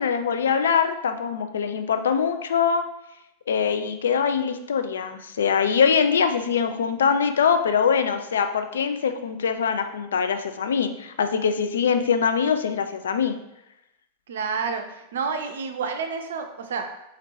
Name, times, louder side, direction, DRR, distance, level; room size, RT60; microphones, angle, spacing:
voice 1, 0.0-2.9 3.5-13.4, left 6 dB, 65° left, 8 dB, 0.3 m, -23 dB
voice 2, 14.3-16.9, right 5 dB, 60° right, 6 dB, 0.5 m, -29 dB
4.3 x 2.6 x 4.2 m, 0.87 s
figure-of-eight pair, 90°, 0 cm